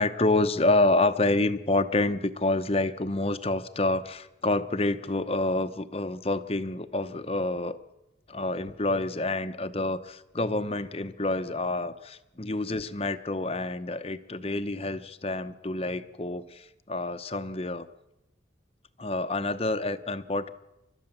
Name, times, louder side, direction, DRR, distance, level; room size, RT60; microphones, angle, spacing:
voice 1, 0.0-7.8 8.3-17.9 19.0-20.5, left 2 dB, 30° left, 11 dB, 0.9 m, -28 dB
29.5 x 13.0 x 7.3 m, 0.98 s
head